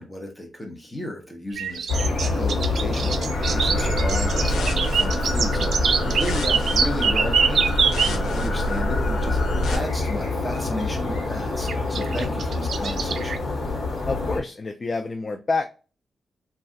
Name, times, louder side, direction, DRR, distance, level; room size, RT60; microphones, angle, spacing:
voice 1, 0.0-7.7 8.0-9.4 9.7-13.4, left 1 dB, 10° left, 1 dB, 1.0 m, -34 dB
sound 1, 1.6-8.1 9.8-9.9 11.7-13.4, right 6 dB, 70° right, 0.3 m, -24 dB
sound 2, 1.9-14.4, left 3 dB, 60° left, 1.3 m, -26 dB
sound 3, 3.3-9.8, right 1 dB, 85° left, 0.7 m, -27 dB
voice 2, 14.1-15.6, left 3 dB, 35° left, 5 dB, 0.3 m, -27 dB
3.1 x 2.4 x 2.8 m, 0.33 s
cardioid pair, 110°, 0 cm